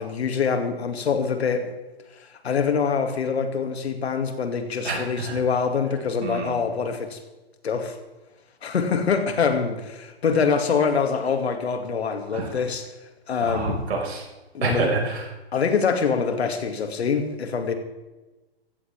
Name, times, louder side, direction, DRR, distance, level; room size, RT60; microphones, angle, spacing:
voice 1, 0.0-1.7 2.2-7.2 7.6-8.0 8.6-12.8 13.3-13.8 14.5-14.9 15.5-17.7, left 5 dB, 80° left, 6 dB, 2.5 m, -24 dB
voice 2, 4.8-5.4 6.2-6.6 12.3-12.6 13.4-14.2 14.6-15.3, right 3 dB, 80° right, 0 dB, 5.6 m, -27 dB
17.5 x 15.5 x 3.6 m, 1.1 s
hypercardioid pair, 155°, 32 cm